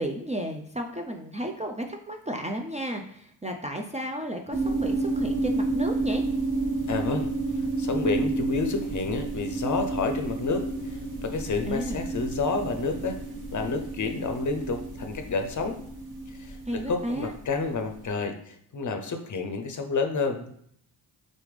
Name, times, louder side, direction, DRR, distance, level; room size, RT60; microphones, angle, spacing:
voice 1, 0.0-6.2 11.7-12.0 16.7-17.3, right 1 dB, 15° right, 3 dB, 0.4 m, -33 dB
sound 1, 4.5-17.9, right 3 dB, 45° right, 1.1 m, -30 dB
voice 2, 6.9-7.3 7.5-13.2 13.5-15.8 16.3-20.5, left 4 dB, 40° left, 6 dB, 0.6 m, -30 dB
4.0 x 3.4 x 3.2 m, 0.67 s
cardioid pair, 55°, 44 cm